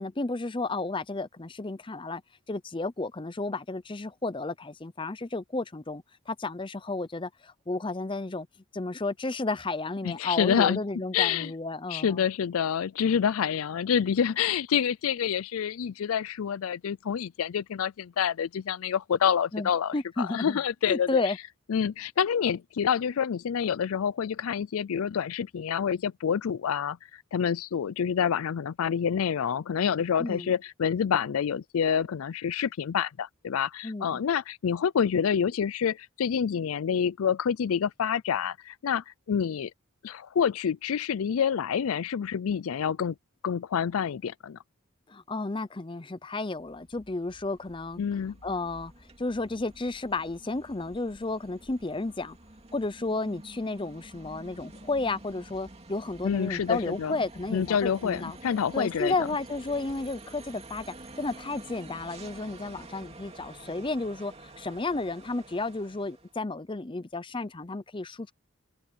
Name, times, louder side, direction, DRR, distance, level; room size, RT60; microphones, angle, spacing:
voice 1, 0.0-2.2 2.5-8.5 8.7-12.2 19.5-20.6 20.9-21.4 30.2-30.6 33.8-34.2 45.1-48.0 48.4-48.9 49.2-52.4 52.7-58.4 58.7-60.9 61.2-68.3, left 2 dB, 25° left, 0.6 m, -32 dB
voice 2, 10.0-10.8 11.1-11.5 11.9-21.2 21.7-39.7 40.0-43.1 43.4-44.6 48.0-48.4 56.2-57.2 57.5-59.1, left 7 dB, 80° left, 0.4 m, -27 dB
sound 1, 46.6-66.4, right 2 dB, 30° right, 2.7 m, -49 dB
head